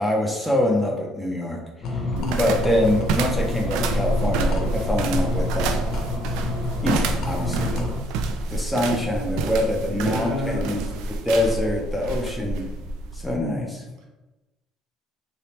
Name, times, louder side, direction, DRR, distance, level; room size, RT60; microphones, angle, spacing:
voice 1, 0.0-1.6 1.9-2.0 2.4-5.8 6.8-7.9 8.5-10.8 11.2-12.6 13.1-13.8, left 1 dB, ahead, -3 dB, 0.5 m, -24 dB
sound 1, 1.8-8.0, left 2 dB, 50° left, 0.6 m, -29 dB
voice 2, 2.1-2.5 9.9-11.0, equal, 70° right, 0 dB, 0.9 m, -31 dB
sound 2, 2.2-13.4, right 2 dB, 90° right, 0.3 m, -28 dB
3.4 x 2.9 x 2.9 m, 1.1 s
cardioid pair, 170°, 0 cm